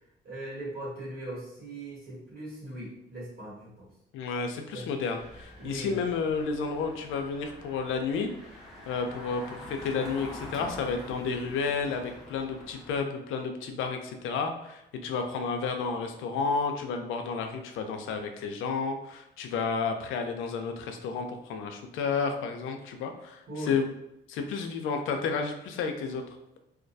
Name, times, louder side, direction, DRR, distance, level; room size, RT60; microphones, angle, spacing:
voice 1, 0.2-3.9 4.7-4.9 5.6-6.0 23.5-23.8, right 1 dB, 50° right, -7 dB, 1.2 m, -39 dB
voice 2, 4.1-8.3 8.9-23.9 24.3-26.2, left 5 dB, 85° left, 5 dB, 0.4 m, -31 dB
Engine, 5.2-13.0, left 1 dB, ahead, 0.8 m, -46 dB
2.3 x 2.1 x 2.6 m, 0.84 s
cardioid pair, 90°, 20 cm